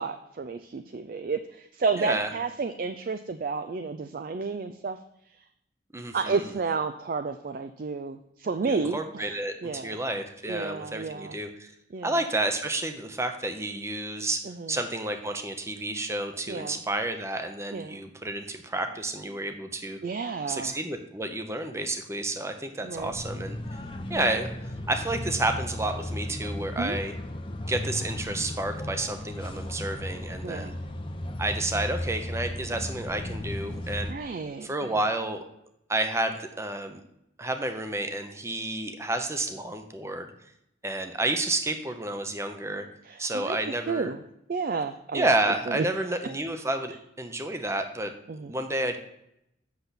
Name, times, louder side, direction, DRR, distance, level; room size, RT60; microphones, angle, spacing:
voice 1, 0.0-5.0 6.1-10.0 10.5-11.4 11.9-12.1 14.4-14.8 16.5-16.8 17.7-18.0 20.0-20.8 22.8-23.1 26.8-27.0 30.4-30.8 34.1-34.9 43.0-43.6 43.9-44.2 44.5-45.3 45.7-45.9 48.3-48.5, right 4 dB, 50° right, 9 dB, 0.4 m, -31 dB
voice 2, 2.0-2.3 5.9-6.5 8.6-11.7 12.0-14.4 14.7-20.0 20.5-23.6 24.1-24.5 24.9-27.1 27.7-30.7 31.4-34.1 34.6-35.4 35.9-37.0 37.4-40.3 40.8-42.9 43.2-44.1 45.1-48.1 48.4-49.0, right 2 dB, 15° right, 7 dB, 0.7 m, -30 dB
sound 1, 23.0-34.1, left 1 dB, 30° left, 0.7 m, -35 dB
8.0 x 6.7 x 4.0 m, 0.80 s
head